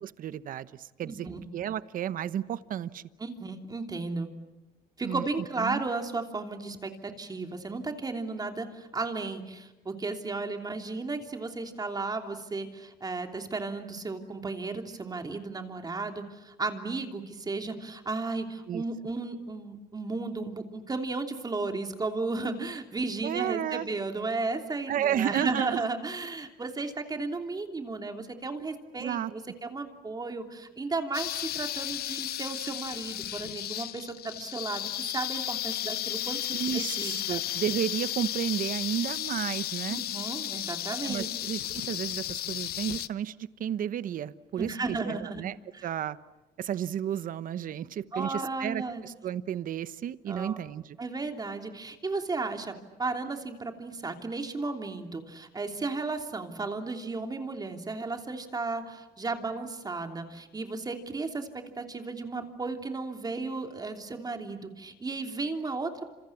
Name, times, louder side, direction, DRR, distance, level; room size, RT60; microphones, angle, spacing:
voice 1, 0.0-1.3 1.5-3.0 5.0-5.3 5.6-5.8 18.7-18.8 23.2-23.9 24.9-25.8 29.0-29.3 36.5-40.0 41.0-45.6 45.8-46.2 46.6-51.0, right 10 dB, 55° right, 15 dB, 1.0 m, -32 dB
voice 2, 1.0-1.4 3.2-4.3 5.0-36.4 36.7-37.4 39.9-41.3 44.6-45.4 45.7-45.9 48.1-49.0 50.3-50.6 51.0-66.1, right 3 dB, 25° right, 4 dB, 3.1 m, -34 dB
sound 1, 31.1-43.1, left 13 dB, 65° left, 0.9 m, -34 dB
29.5 x 27.5 x 7.3 m, 1.0 s
cardioid pair, 110°, 17 cm